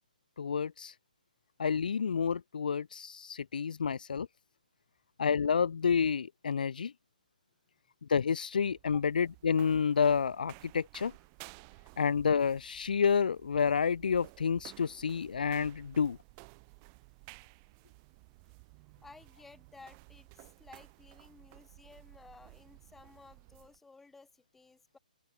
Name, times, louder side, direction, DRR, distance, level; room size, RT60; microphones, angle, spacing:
voice 1, 0.4-0.9 1.6-4.3 5.2-6.9 8.1-11.1 12.0-16.2, left 6 dB, 75° left, 0.5 m, -29 dB
sound 1, 8.5-23.8, right 37 dB, 25° right, 5.6 m, -55 dB
voice 2, 19.0-25.0, left 3 dB, 5° left, 3.3 m, -56 dB
open air
hypercardioid pair, 160°, 5 cm